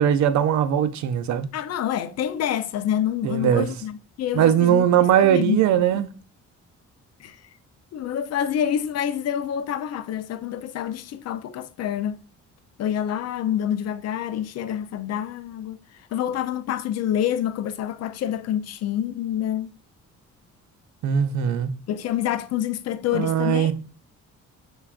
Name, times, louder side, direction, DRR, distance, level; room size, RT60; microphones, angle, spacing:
voice 1, 0.0-1.5 3.2-3.7 4.3-6.1 21.0-21.7 23.1-23.7, right 9 dB, 70° right, 0.5 m, -20 dB
voice 2, 1.5-4.9 5.2-5.6 7.2-7.4 7.9-12.2 12.8-15.8 16.1-19.7 21.9-23.7, left 10 dB, 55° left, 0.4 m, -27 dB
5.7 x 2.3 x 2.3 m
cardioid pair, 90°, 30 cm